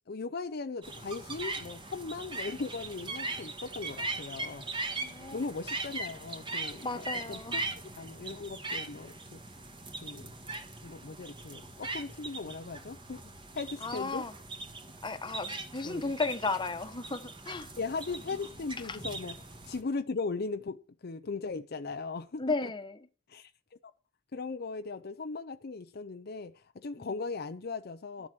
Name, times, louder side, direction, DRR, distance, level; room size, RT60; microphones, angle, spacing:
voice 1, 0.1-4.6 5.3-7.6 8.0-9.4 10.0-10.3 10.8-13.2 13.5-14.2 15.8-16.1 17.8-22.4 23.3-23.5 24.3-28.3, left 4 dB, 55° left, 0.6 m, -38 dB
sound 1, 0.8-19.8, right 2 dB, 25° right, 1.9 m, -40 dB
voice 2, 5.0-5.4 6.8-7.6 13.8-14.3 15.0-17.7 18.8-19.0 22.4-23.1 27.0-27.2, left 3 dB, 25° left, 1.2 m, -35 dB
12.5 x 7.5 x 6.2 m
head